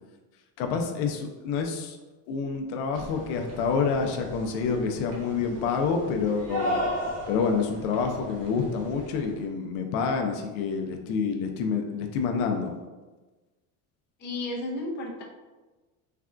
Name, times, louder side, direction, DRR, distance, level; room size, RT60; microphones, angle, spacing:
voice 1, 0.6-2.0 2.3-6.8 7.3-12.7, left 5 dB, 80° left, 4 dB, 0.5 m, -28 dB
sound 1, 2.9-9.4, equal, 75° right, 1.1 m, -36 dB
voice 2, 14.2-15.2, left 2 dB, 25° left, -1 dB, 0.5 m, -33 dB
3.3 x 2.2 x 2.4 m, 1.2 s
cardioid pair, 130°, 39 cm